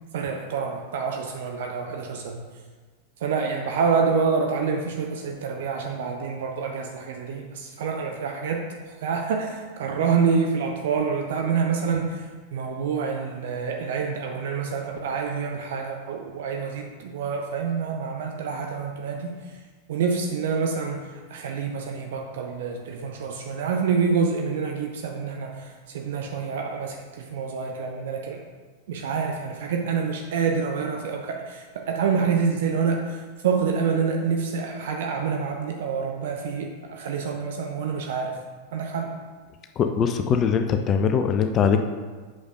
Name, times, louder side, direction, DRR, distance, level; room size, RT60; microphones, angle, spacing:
voice 1, 0.1-2.4 3.2-19.6 19.9-28.4 28.9-38.3 38.7-39.1, right 5 dB, 55° right, 2 dB, 0.6 m, -27 dB
voice 2, 39.8-41.8, left 6 dB, 30° left, 6 dB, 0.4 m, -21 dB
8.0 x 6.5 x 2.4 m, 1.4 s
figure-of-eight pair, 90°, 0 cm